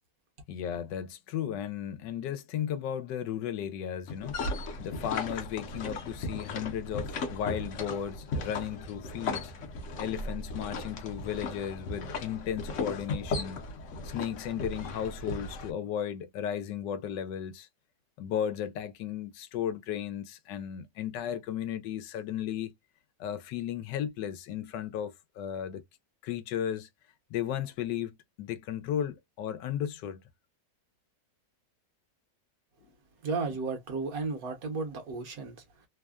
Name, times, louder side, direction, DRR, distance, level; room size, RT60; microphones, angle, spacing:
voice 1, 0.5-9.5 10.0-13.6 14.0-17.7 18.2-22.7 23.2-25.8 26.2-26.9 27.3-30.2 32.8-32.9, left 9 dB, 85° left, 1.3 m, -35 dB
sound 1, 4.1-15.7, left 3 dB, 55° left, 0.9 m, -36 dB
voice 2, 33.2-35.6, right 4 dB, 60° right, 1.3 m, -34 dB
3.3 x 2.1 x 2.3 m
omnidirectional pair, 1.8 m